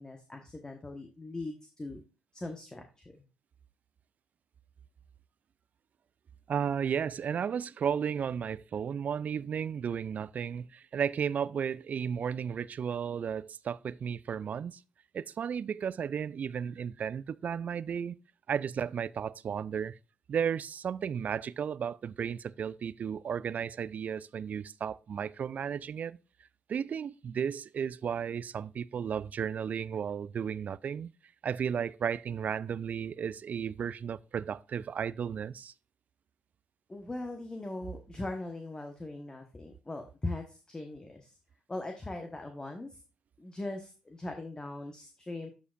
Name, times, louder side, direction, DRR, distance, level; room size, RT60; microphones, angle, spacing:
voice 1, 0.0-2.0 2.3-3.2 36.9-41.4 41.7-43.0 43.4-45.5, left 2 dB, 25° left, 1.1 m, -40 dB
voice 2, 6.5-14.8 15.1-18.2 18.5-20.0 20.3-26.2 26.7-31.1 31.4-35.7, right 7 dB, 50° right, 0.3 m, -34 dB
11.5 x 5.0 x 2.5 m
hypercardioid pair, 45°, 3 cm